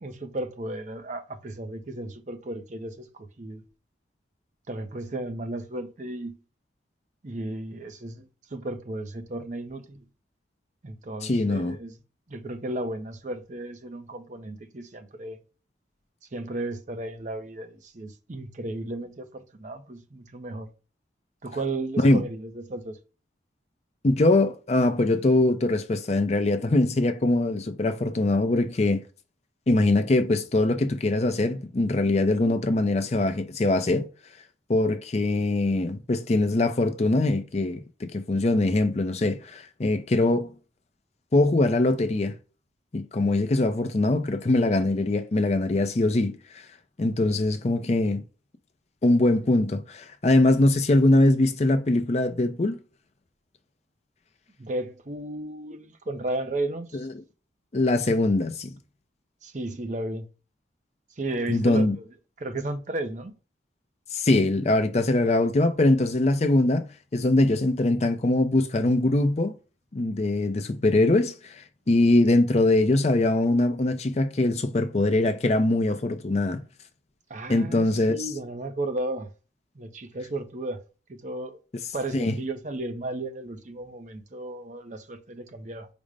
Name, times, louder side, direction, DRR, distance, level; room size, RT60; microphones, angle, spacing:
voice 1, 0.0-3.6 4.7-6.4 7.2-10.1 10.8-12.0 12.3-15.4 16.3-20.7 21.4-23.0 54.6-57.1 59.4-60.3 61.2-61.9 62.4-63.3 77.3-79.3 79.7-80.8 81.1-81.6 81.9-85.9, right 2 dB, 40° right, 0.6 m, -34 dB
voice 2, 11.2-11.8 22.0-22.2 24.0-29.0 29.7-34.1 34.7-40.5 41.3-42.3 42.9-46.6 47.0-48.2 49.0-52.8 56.9-57.1 57.7-58.8 61.5-62.0 64.1-69.5 69.9-76.6 77.5-78.3 82.1-82.3, left 2 dB, 35° left, 0.5 m, -22 dB
5.1 x 2.1 x 4.7 m
head